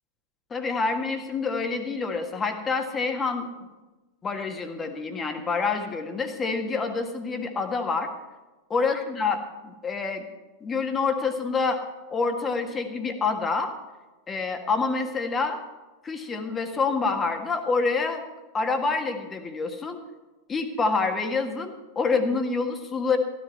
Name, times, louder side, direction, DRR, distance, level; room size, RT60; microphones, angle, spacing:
voice 1, 0.5-3.7 4.2-8.1 8.7-10.2 10.6-11.8 12.1-13.7 14.3-15.6 16.0-18.2 18.5-20.0 20.5-23.2, left 4 dB, 20° left, 5 dB, 1.6 m, -27 dB
14.5 x 13.0 x 4.5 m, 1.1 s
figure-of-eight pair, 90°, 0 cm